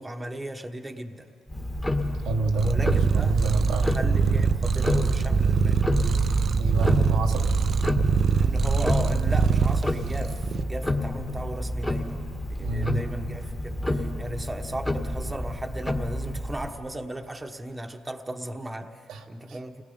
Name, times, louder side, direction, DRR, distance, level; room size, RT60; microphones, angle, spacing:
voice 1, 0.0-1.3 2.6-5.9 8.4-19.8, right 1 dB, 15° right, 4 dB, 1.2 m, -36 dB
Tick-tock, 1.5-16.7, left 1 dB, 15° left, 1.8 m, -30 dB
voice 2, 2.2-2.8 3.1-3.8 6.6-7.5 12.6-13.0, right 3 dB, 90° right, 3 dB, 1.3 m, -27 dB
Purr, 2.6-10.6, right 5 dB, 50° right, 0.6 m, -23 dB
29.0 x 19.0 x 5.5 m, 2.6 s
cardioid pair, 90°, 0 cm